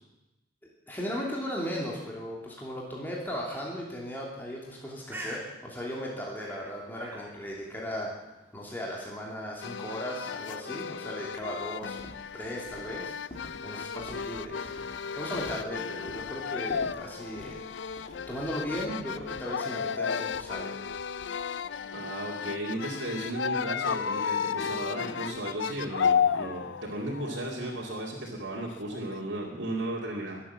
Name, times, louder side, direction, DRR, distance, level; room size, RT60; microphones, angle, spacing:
voice 1, 0.9-8.1 8.5-12.0 12.3-13.2 13.6-14.7 15.1-20.7, equal, 10° left, -3 dB, 2.8 m, -37 dB
Bird, 4.7-12.2, right 1 dB, 10° right, 3.0 m, -49 dB
sound 1, 9.6-29.3, left 7 dB, 85° left, 0.5 m, -33 dB
Walk footsteps, 11.9-18.9, left 1 dB, 35° left, 2.3 m, -49 dB
voice 2, 21.9-30.4, right 1 dB, 85° right, -5 dB, 2.5 m, -35 dB
21.5 x 8.4 x 7.3 m, 0.98 s
head